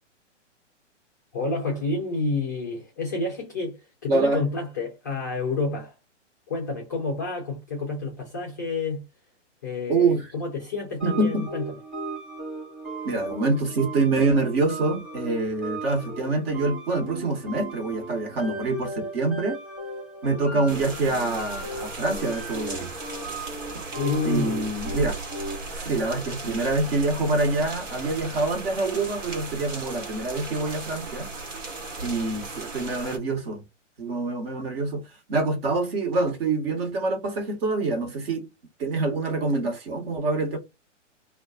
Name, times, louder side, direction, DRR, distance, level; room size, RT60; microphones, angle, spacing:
voice 1, 1.3-5.9 6.5-9.0 9.6-11.8 23.9-24.6, left 3 dB, 15° left, 0.3 m, -29 dB
voice 2, 4.1-4.4 9.9-10.2 11.0-11.5 13.0-19.6 20.2-22.9 24.2-25.2 25.7-31.3 32.0-33.6 34.0-35.0 35.3-38.4 38.8-40.6, right 3 dB, 50° right, 1.3 m, -25 dB
sound 1, 11.0-25.8, right 2 dB, ahead, 1.0 m, -37 dB
sound 2, 20.7-33.2, right 3 dB, 80° right, 1.2 m, -36 dB
2.4 x 2.3 x 2.4 m
hypercardioid pair, 130°, 37 cm